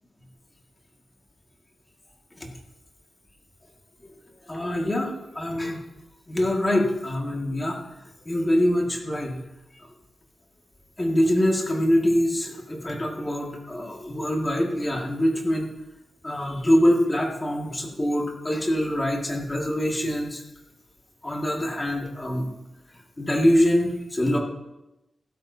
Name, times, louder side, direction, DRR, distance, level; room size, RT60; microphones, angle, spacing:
voice 1, 4.5-5.8 6.3-7.8 8.3-9.4 11.0-15.7 16.2-20.4 21.2-22.5 23.2-24.4, equal, 15° left, 0 dB, 1.9 m, -24 dB
16.0 x 12.5 x 2.7 m, 0.98 s
wide cardioid pair, 140°, 0 cm